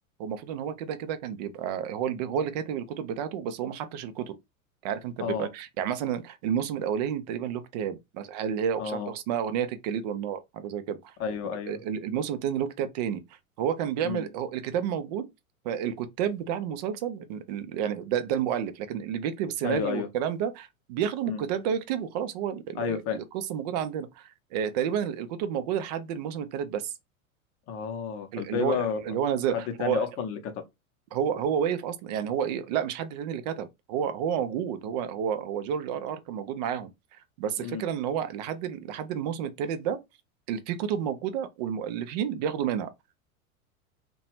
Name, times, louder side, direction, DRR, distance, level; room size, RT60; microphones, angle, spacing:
voice 1, 0.2-4.4 4.8-11.1 11.7-13.2 13.6-15.3 15.6-26.9 28.3-30.1 31.1-40.0 40.5-42.9, right 8 dB, 30° right, 0.4 m, -30 dB
voice 2, 8.8-9.1 11.2-11.8 14.0-14.3 19.6-20.1 21.2-21.4 22.8-23.2 27.7-29.1 29.5-30.5 37.6-37.8, left 7 dB, 30° left, 0.7 m, -31 dB
2.7 x 2.2 x 2.9 m
figure-of-eight pair, 85°, 43 cm